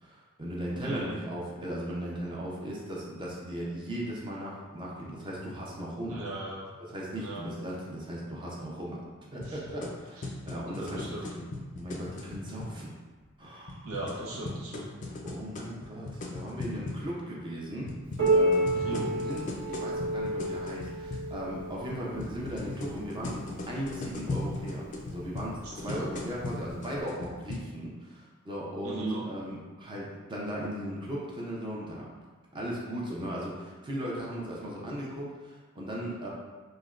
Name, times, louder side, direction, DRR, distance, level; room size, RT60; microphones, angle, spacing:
voice 1, 0.0-6.2 6.9-9.0 9.3-11.5 11.8-13.0 13.4-13.9 15.2-17.9 18.3-24.9 25.1-32.1 32.5-36.3, equal, 25° right, -4 dB, 0.5 m, -37 dB
voice 2, 0.8-1.1 6.1-6.6 7.2-7.4 9.4-9.6 10.2-10.3 10.8-11.3 13.8-14.9 18.7-19.0 25.6-26.1 28.8-29.2, right 2 dB, 90° right, -4 dB, 0.7 m, -37 dB
sound 1, 9.4-12.7 13.7-17.0 17.9-21.3 22.2-27.6, left 2 dB, 35° left, 0.3 m, -38 dB
Piano, 18.2-23.5 24.4-24.5 25.0-25.1 25.9-26.0 27.0-27.1, right 1 dB, 65° right, 1.0 m, -30 dB
3.3 x 2.1 x 2.4 m, 1.3 s
head